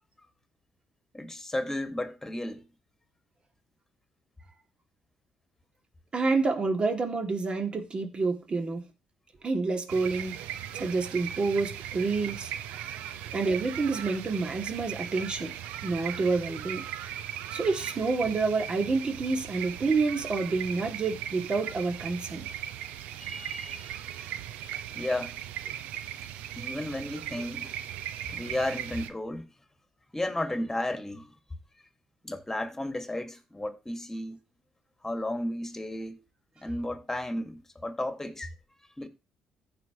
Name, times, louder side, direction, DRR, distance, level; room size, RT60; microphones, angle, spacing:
voice 1, 1.1-2.7 10.7-10.8 13.1-13.3 23.2-23.9 24.9-25.4 26.5-27.7 28.3-29.5 30.1-31.3 32.2-34.4 35.0-36.2 36.6-38.5 39.0-39.1, left 1 dB, 15° left, 2.0 m, -33 dB
voice 2, 6.1-8.9 9.4-10.4 10.7-12.5 13.3-15.5 15.8-16.8 17.5-22.5, right 4 dB, 40° right, 2.5 m, -28 dB
sound 1, 9.9-29.1, right 11 dB, 80° right, 0.6 m, -38 dB
15.0 x 5.4 x 3.1 m
hypercardioid pair, 55°, 3 cm